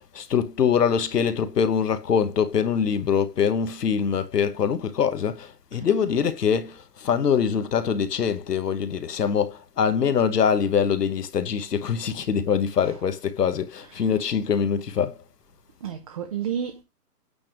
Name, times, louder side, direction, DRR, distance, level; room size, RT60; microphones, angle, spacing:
voice 1, 0.0-15.2, left 7 dB, 80° left, 1.3 m, -24 dB
voice 2, 15.8-16.8, right 8 dB, 25° right, 0.7 m, -31 dB
8.7 x 3.5 x 6.1 m
hypercardioid pair, 155°, 47 cm